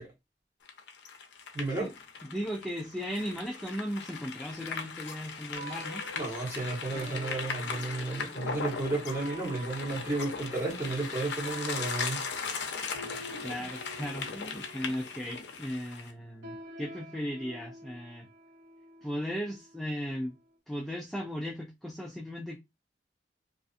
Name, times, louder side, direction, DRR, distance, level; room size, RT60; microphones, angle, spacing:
sound 1, 0.7-16.1, left 5 dB, 80° left, 0.5 m, -38 dB
voice 1, 1.5-1.9 6.1-12.2 13.3-13.4, right 2 dB, 15° right, 1.1 m, -33 dB
voice 2, 2.2-6.0 13.4-18.3 19.0-20.4 20.7-22.6, equal, ahead, 0.3 m, -36 dB
sound 2, 5.5-20.0, right 1 dB, 90° right, 0.9 m, -47 dB
2.5 x 2.4 x 2.4 m
head